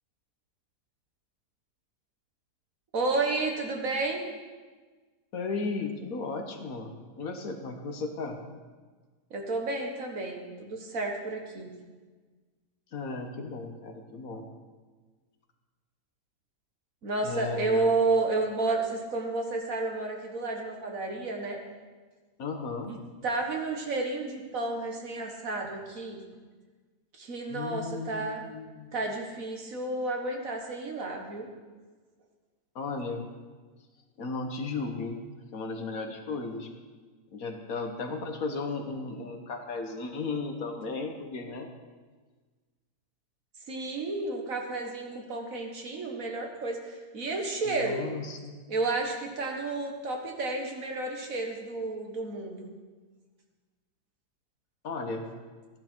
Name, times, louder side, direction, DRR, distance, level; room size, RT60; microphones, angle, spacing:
voice 1, 2.9-4.2 9.3-11.7 17.0-21.6 22.9-23.0 23.2-26.2 27.1-28.4 28.9-31.5 43.7-48.1 48.7-52.7, right 3 dB, 55° right, 2 dB, 1.8 m, -31 dB
voice 2, 5.3-8.4 12.9-14.5 17.2-17.9 22.4-22.9 27.5-28.9 32.7-33.3 34.2-35.2 35.5-36.7 37.3-41.7 47.7-48.6 54.8-55.3, left 3 dB, 60° left, 4 dB, 1.5 m, -35 dB
14.5 x 10.5 x 4.4 m, 1.4 s
omnidirectional pair, 1.7 m